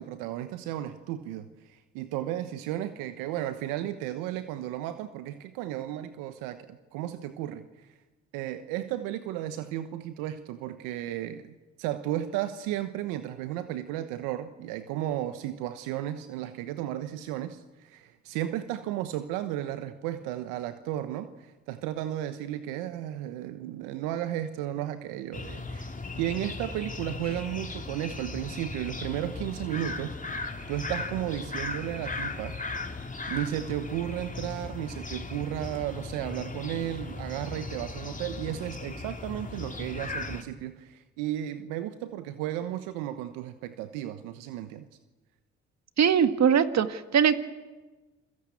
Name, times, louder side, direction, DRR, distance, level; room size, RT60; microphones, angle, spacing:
voice 1, 0.0-7.9 8.3-32.9 33.3-44.9, right 12 dB, 85° right, 10 dB, 1.2 m, -34 dB
sound 1, 25.3-40.4, left 3 dB, 25° left, 3.5 m, -37 dB
voice 2, 46.0-47.4, right 7 dB, 55° right, 10 dB, 2.0 m, -21 dB
28.5 x 22.5 x 8.5 m, 1.2 s
hypercardioid pair, 50°, 32 cm